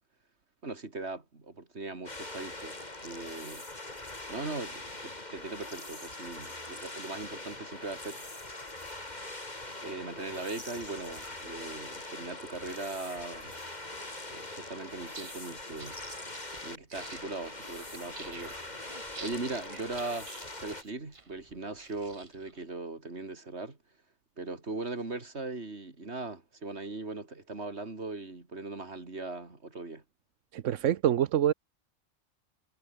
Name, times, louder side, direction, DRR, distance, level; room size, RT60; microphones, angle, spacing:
voice 1, 0.6-3.7 4.3-8.2 9.8-13.5 14.3-16.0 16.6-18.9 19.2-23.8 24.4-30.0, right 3 dB, 60° right, 3.6 m, -39 dB
sound 1, 2.0-20.8, left 2 dB, 35° left, 3.4 m, -42 dB
sound 2, 15.1-22.6, right 3 dB, 25° right, 1.3 m, -49 dB
voice 2, 30.5-31.5, right 10 dB, 90° right, 1.1 m, -26 dB
omnidirectional pair, 1.2 m